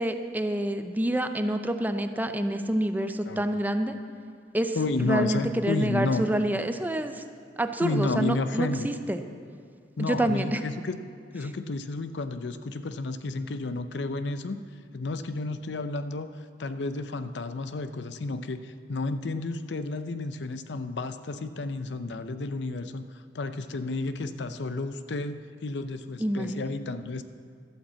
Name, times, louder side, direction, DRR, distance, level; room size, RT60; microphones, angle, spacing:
voice 1, 0.0-3.9 4.5-7.2 7.6-9.2 10.0-10.6 26.2-26.6, right 1 dB, 10° right, 8 dB, 0.5 m, -27 dB
voice 2, 4.7-6.3 7.8-8.9 10.0-11.0 11.3-14.6 14.9-16.3 16.6-27.2, left 3 dB, 70° left, 11 dB, 0.6 m, -31 dB
12.0 x 8.6 x 7.4 m, 2.3 s
head